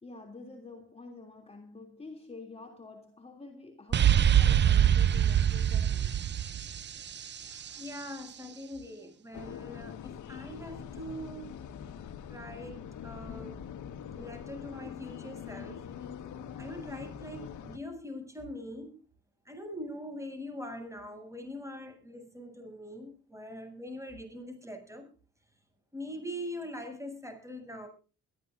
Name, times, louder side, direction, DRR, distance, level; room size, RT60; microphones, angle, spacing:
voice 1, 0.0-6.1, left 3 dB, 20° left, 3.1 m, -48 dB
sound 1, 3.9-7.7, right 10 dB, 35° right, 0.6 m, -24 dB
voice 2, 7.3-11.6 12.3-12.8 13.0-13.7 14.2-15.8 16.6-19.0 19.5-25.1 25.9-27.9, left 1 dB, 10° right, 7.7 m, -42 dB
sound 2, 9.3-17.8, left 8 dB, 75° left, 1.7 m, -43 dB
23.0 x 13.5 x 2.7 m
cardioid pair, 90°, 30 cm